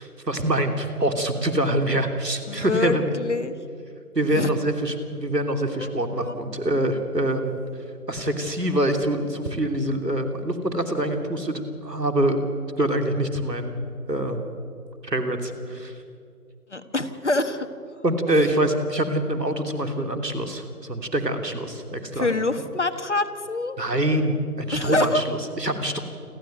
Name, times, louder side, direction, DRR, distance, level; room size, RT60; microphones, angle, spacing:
voice 1, 0.0-3.0 4.1-7.6 8.1-12.4 12.8-13.8 14.1-14.4 15.0-15.9 18.0-22.3 23.8-26.0, right 1 dB, 80° right, 6 dB, 3.2 m, -25 dB
voice 2, 2.5-3.5 4.3-4.5 5.7-5.9 6.2-6.3 16.7-17.7 18.3-18.5 22.1-23.8 24.7-25.2, left 2 dB, 45° left, 9 dB, 1.4 m, -26 dB
28.5 x 12.5 x 9.1 m, 2.4 s
figure-of-eight pair, 165°, 48 cm